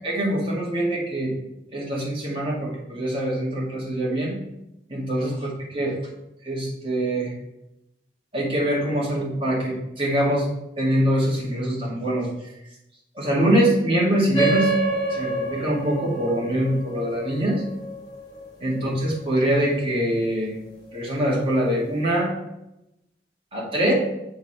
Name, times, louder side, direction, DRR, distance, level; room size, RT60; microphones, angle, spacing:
voice 1, 0.0-1.3 1.7-4.4 4.9-6.0 6.4-7.3 8.3-10.5 10.8-12.3 13.2-14.7 15.1-17.6 18.6-20.5 20.9-22.3 23.5-23.9, right 1 dB, 30° right, -4 dB, 1.9 m, -24 dB
sound 1, 14.3-19.3, right 3 dB, 25° left, 1.7 m, -28 dB
6.7 x 3.3 x 5.9 m, 0.86 s
head